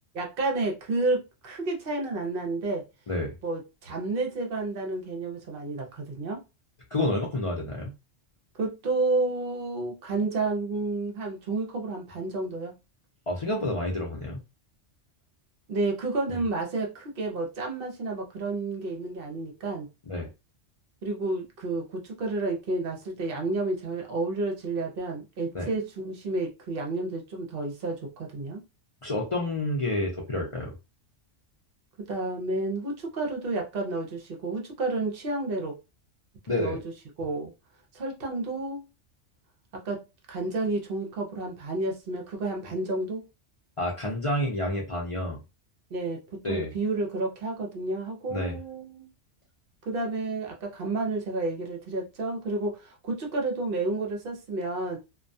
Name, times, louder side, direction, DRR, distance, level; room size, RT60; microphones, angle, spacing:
voice 1, 0.1-2.8 3.4-6.4 8.6-12.7 15.7-19.9 21.0-28.6 32.1-35.8 36.5-36.8 37.2-37.5 37.9-38.8 39.7-40.0 40.3-43.2 45.9-49.1 49.9-55.0, right 2 dB, 55° right, 0.8 m, -30 dB
voice 2, 6.9-7.9 13.3-14.4 16.3-16.4 20.1-20.3 25.5-25.7 29.0-30.7 36.5-36.8 43.8-45.4 46.4-46.7 48.3-48.6, left 1 dB, 50° left, 0.4 m, -29 dB
2.3 x 2.2 x 2.6 m
omnidirectional pair, 1.2 m